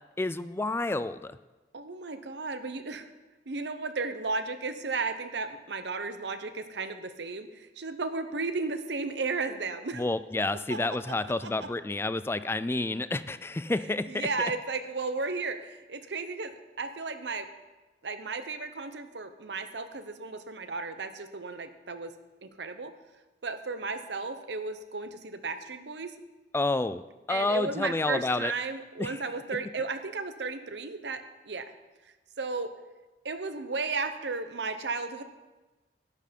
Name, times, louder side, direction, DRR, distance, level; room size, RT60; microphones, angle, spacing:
voice 1, 0.2-1.4 9.9-14.3 26.5-28.5 29.0-29.2 29.5-29.6, left 2 dB, 15° left, 14 dB, 0.3 m, -30 dB
voice 2, 1.7-3.1 3.5-10.0 10.7-10.8 14.1-16.5 16.8-17.5 18.0-22.1 22.4-22.9 23.4-26.1 27.3-31.6 32.4-32.7 33.2-35.2, right 4 dB, 75° right, 9 dB, 0.9 m, -34 dB
11.5 x 9.0 x 5.2 m, 1.2 s
head